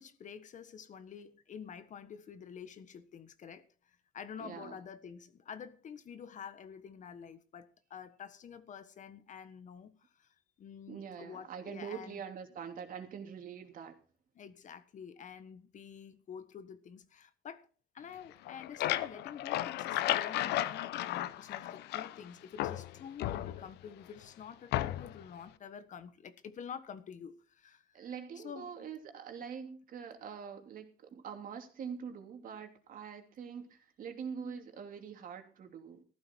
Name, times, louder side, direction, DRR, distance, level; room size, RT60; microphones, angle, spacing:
voice 1, 0.0-12.2 14.3-17.7 17.9-28.1 28.3-28.9, left 7 dB, 45° left, 1.4 m, -48 dB
voice 2, 4.4-4.8 10.9-14.0 27.9-36.0, right 7 dB, 55° right, 2.9 m, -44 dB
sound 1, 18.3-22.2 22.6-23.9 24.7-25.2, left 13 dB, 80° left, 0.9 m, -34 dB
14.5 x 12.0 x 4.6 m
cardioid pair, 110°, 17 cm